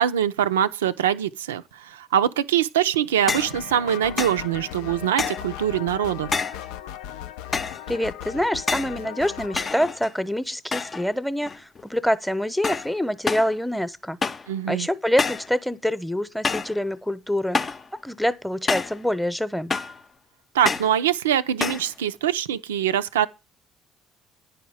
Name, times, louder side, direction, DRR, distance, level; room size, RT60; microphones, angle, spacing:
voice 1, 0.0-6.3 14.5-14.9 20.5-23.3, right 10 dB, 80° right, 0.5 m, -23 dB
sound 1, 3.3-9.7, left 12 dB, 70° left, 0.4 m, -37 dB
sound 2, 3.3-3.6 4.2-4.4 5.2-5.5 6.3-6.7 7.5-7.9 8.7-9.0 9.6-10.2 10.7-11.1 11.4-11.9 12.6-12.9 13.3-13.5 14.2-14.5 15.2-15.5 16.4-16.8 17.5-17.9 18.7-19.0 19.7-20.0 20.6-21.0 21.6-21.9, left 4 dB, 35° left, 0.7 m, -28 dB
voice 2, 7.9-14.2 14.7-17.7 18.0-19.7, equal, ahead, 0.9 m, -26 dB
10.0 x 5.0 x 7.2 m
hypercardioid pair, 55°, 0 cm